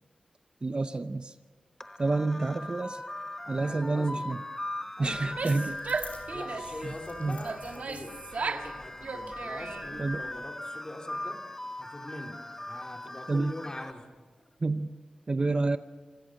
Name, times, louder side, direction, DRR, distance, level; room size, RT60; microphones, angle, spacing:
voice 1, 0.6-1.3 2.0-3.0 3.5-4.4 5.0-5.8 6.8-6.9 7.2-7.4 10.0-10.2 13.3-13.5 14.6-15.0 15.3-15.8, right 3 dB, 40° right, 11 dB, 0.7 m, -28 dB
sound 1, 1.8-13.9, left 1 dB, 15° left, 1.0 m, -40 dB
voice 2, 3.4-4.3 5.0-5.3 6.1-11.4 11.8-12.4 12.7-14.1, left 1 dB, 30° left, 2 dB, 3.3 m, -43 dB
sound 2, 5.0-10.4, left 3 dB, 65° left, 5.0 m, -51 dB
Female speech woman speaking / Yell, 5.2-6.8 7.4-8.7 9.0-10.0, right 4 dB, 65° right, 1.5 m, -36 dB
25.5 x 16.5 x 6.5 m, 1.5 s
wide cardioid pair, 80°, 3 cm